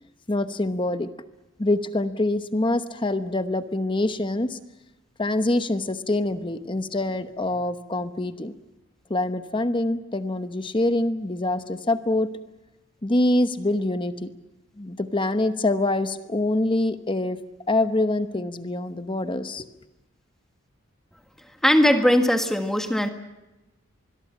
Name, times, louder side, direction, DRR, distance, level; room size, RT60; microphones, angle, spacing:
voice 1, 0.3-1.1 1.6-4.6 5.2-8.5 9.1-12.3 13.0-14.3 14.8-17.4 17.7-19.7, left 2 dB, 25° left, 10 dB, 1.0 m, -25 dB
voice 2, 21.6-23.1, equal, ahead, 6 dB, 1.7 m, -19 dB
25.0 x 22.0 x 7.4 m, 1.0 s
head